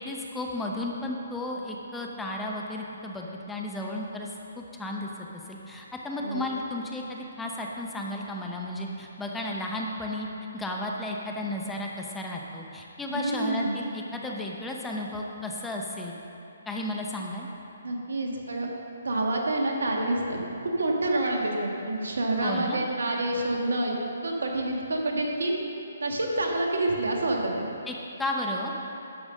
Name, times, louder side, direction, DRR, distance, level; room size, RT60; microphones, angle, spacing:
voice 1, 0.0-4.3 4.6-10.3 10.5-16.2 16.7-17.5 22.3-22.8 27.9-28.7, left 1 dB, 5° left, -1 dB, 0.8 m, -33 dB
voice 2, 13.1-13.8 17.8-18.7 19.0-23.9 24.2-25.6 26.0-27.7, right 2 dB, 75° right, 1 dB, 1.6 m, -28 dB
11.5 x 5.3 x 6.4 m, 2.8 s
figure-of-eight pair, 145°, 0 cm